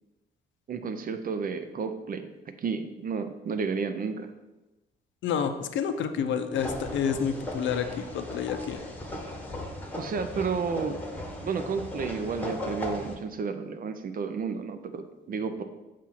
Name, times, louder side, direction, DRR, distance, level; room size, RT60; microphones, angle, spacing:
voice 1, 0.7-2.3 2.6-4.3 10.0-11.0 11.4-15.6, right 5 dB, 45° right, 9 dB, 0.6 m, -31 dB
voice 2, 5.2-8.8, left 7 dB, 70° left, 8 dB, 0.6 m, -29 dB
sound 1, 6.6-13.1, left 1 dB, 10° left, 1.1 m, -37 dB
7.3 x 2.5 x 5.6 m, 1.1 s
cardioid pair, 90°, 20 cm